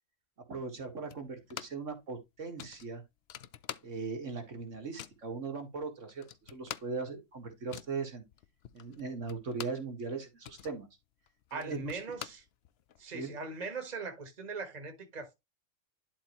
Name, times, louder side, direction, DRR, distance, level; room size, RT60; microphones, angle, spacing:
voice 1, 0.5-3.0 3.8-8.2 8.7-10.9 11.5-12.0 13.1-13.4, right 4 dB, 70° right, 2.1 m, -39 dB
sound 1, 1.1-1.9 2.2-2.3 2.6-4.3 4.5-5.3 5.8-5.9 6.1-9.9 10.2-13.0, left 10 dB, 60° left, 0.8 m, -47 dB
voice 2, 11.5-12.4 13.0-15.3, right 4 dB, 35° right, 1.6 m, -40 dB
11.5 x 4.3 x 3.0 m
omnidirectional pair, 1.3 m